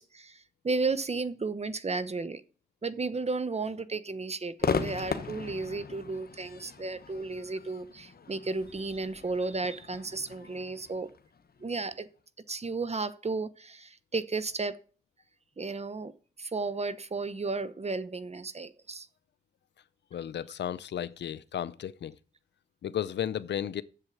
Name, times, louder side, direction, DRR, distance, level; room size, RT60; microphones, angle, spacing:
voice 1, 0.0-2.4 2.8-11.1 11.6-12.1 12.5-14.8 15.6-16.1 16.4-19.1, right 3 dB, 35° right, 1.0 m, -33 dB
Crowd / Fireworks, 4.6-11.9, left 5 dB, 60° left, 1.1 m, -37 dB
voice 2, 20.1-22.1 22.8-23.8, left 10 dB, 80° left, 0.5 m, -34 dB
7.6 x 7.4 x 6.3 m
cardioid pair, 55°, 18 cm